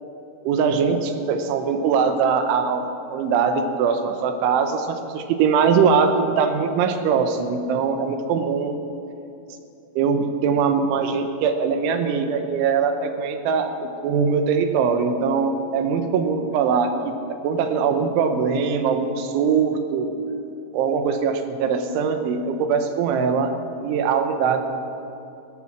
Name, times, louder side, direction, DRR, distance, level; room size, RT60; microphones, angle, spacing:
voice 1, 0.4-8.8 10.0-20.1 20.7-23.5 23.8-24.6, right 6 dB, 85° right, 7 dB, 3.4 m, -22 dB
16.5 x 13.0 x 6.2 m, 2.7 s
omnidirectional pair, 5.4 m